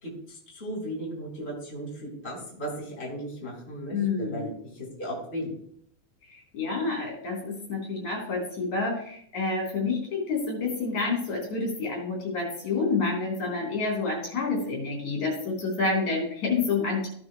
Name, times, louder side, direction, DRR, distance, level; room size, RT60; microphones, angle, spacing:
voice 1, 0.0-5.6, equal, 20° left, -3 dB, 4.1 m, -36 dB
voice 2, 3.9-4.5 6.3-17.1, left 4 dB, 65° left, -1 dB, 5.2 m, -28 dB
16.0 x 9.6 x 2.3 m, 0.65 s
omnidirectional pair, 3.5 m